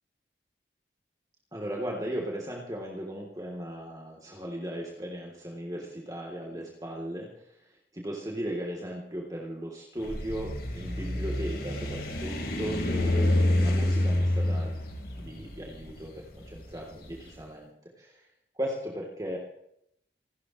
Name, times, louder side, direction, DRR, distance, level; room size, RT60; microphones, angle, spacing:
voice 1, 1.5-14.8 15.1-18.3 18.5-19.5, equal, 20° right, -1 dB, 3.3 m, -37 dB
sound 1, 10.0-17.1, left 1 dB, 55° left, 4.5 m, -28 dB
29.5 x 14.0 x 3.2 m, 0.73 s
head